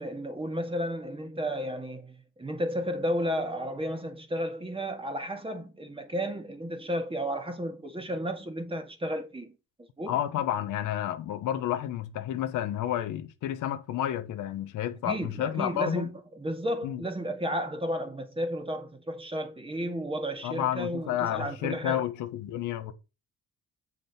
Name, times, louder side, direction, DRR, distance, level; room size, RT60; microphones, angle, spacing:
voice 1, 0.0-9.5 10.0-10.2 15.1-22.1, equal, 20° right, 2.1 m, -33 dB
voice 2, 10.1-16.1 16.8-17.0 20.4-22.9, left 11 dB, 90° left, 1.3 m, -30 dB
7.9 x 6.1 x 4.4 m
cardioid pair, 90°, 30 cm